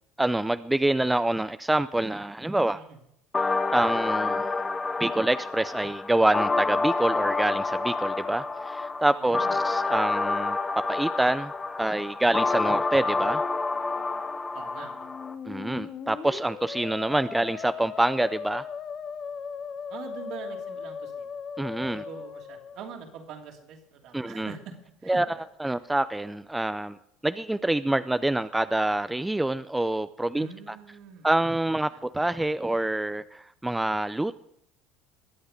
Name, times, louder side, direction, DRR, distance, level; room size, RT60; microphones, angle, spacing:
voice 1, 0.2-2.8 3.7-4.5 5.0-11.5 11.8-13.4 15.5-18.6 21.6-22.0 24.1-24.5 25.1-27.0 27.2-30.8 31.2-34.4, right 1 dB, 10° right, 13 dB, 0.5 m, -26 dB
sound 1, 3.3-15.3, left 3 dB, 20° left, 1.3 m, -28 dB
voice 2, 9.2-9.6 14.5-15.1 19.9-21.3 21.9-24.8 25.0-25.2 25.6-25.7 30.3-31.3 31.9-32.0, right 6 dB, 60° right, 1 dB, 2.9 m, -43 dB
Musical instrument, 14.9-22.9, left 6 dB, 45° left, 1.1 m, -38 dB
22.0 x 8.0 x 5.1 m, 0.76 s
hypercardioid pair, 80°, 0 cm